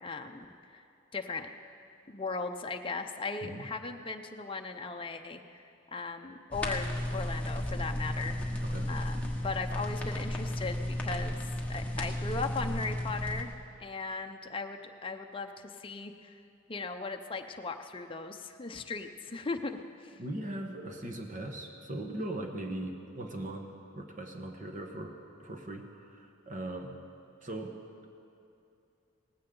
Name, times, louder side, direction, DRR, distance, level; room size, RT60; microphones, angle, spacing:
voice 1, 0.0-0.8 1.1-1.5 2.1-5.6 5.9-6.9 7.1-8.4 8.9-11.4 11.7-13.5 13.8-16.3 16.7-20.1, left 4 dB, 25° left, 4 dB, 0.6 m, -37 dB
sound 1, 6.5-13.4, left 1 dB, 5° left, 1.2 m, -34 dB
voice 2, 20.2-23.7 23.9-27.0 27.4-27.8, right 1 dB, 40° right, 4 dB, 1.2 m, -39 dB
18.0 x 15.5 x 3.9 m, 2.6 s
head